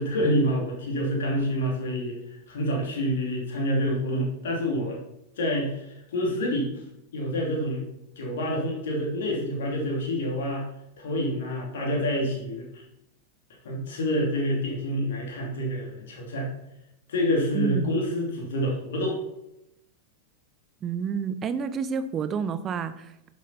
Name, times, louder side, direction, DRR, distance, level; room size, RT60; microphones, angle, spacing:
voice 1, 0.0-2.2 2.5-5.0 5.4-6.7 7.1-7.8 8.2-10.7 11.0-12.8 13.6-16.5 17.1-19.2, equal, 60° left, -1 dB, 2.8 m, -27 dB
voice 2, 17.5-17.9 20.8-23.3, right 6 dB, 25° right, 12 dB, 0.8 m, -29 dB
10.5 x 7.4 x 4.3 m, 0.83 s
figure-of-eight pair, 90°, 0 cm